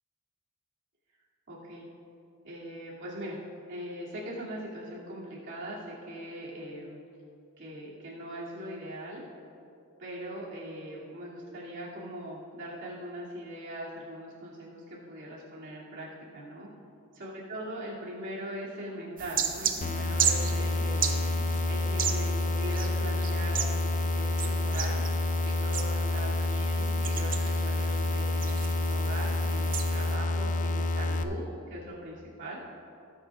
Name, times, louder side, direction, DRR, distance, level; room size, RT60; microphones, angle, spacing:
voice 1, 1.5-1.9 2.4-3.4 3.7-7.0 7.6-9.2 10.0-16.1 16.3-16.7 17.1-21.2 21.7-25.0 25.4-32.6, right 1 dB, 55° right, -6 dB, 2.7 m, -41 dB
sound 1, 19.2-30.2, right 8 dB, 40° right, 0.7 m, -35 dB
sound 2, 19.8-31.2, left 2 dB, 35° left, 0.4 m, -28 dB
19.0 x 9.0 x 2.5 m, 2.6 s
head